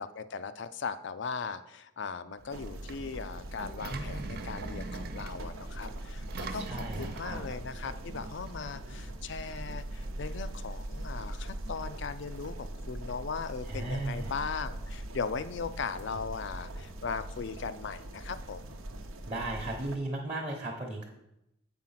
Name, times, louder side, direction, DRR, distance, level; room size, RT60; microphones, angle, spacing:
voice 1, 0.0-18.8, left 5 dB, 60° left, 13 dB, 0.4 m, -38 dB
Engine, 2.4-8.5, right 3 dB, 45° right, 0.6 m, -43 dB
sound 1, 2.5-20.0, right 1 dB, 80° right, 0.8 m, -41 dB
voice 2, 3.9-4.4 6.6-7.4 13.6-14.3 19.3-21.1, right 2 dB, 30° right, -2 dB, 0.9 m, -36 dB
7.5 x 4.8 x 5.7 m, 0.86 s
head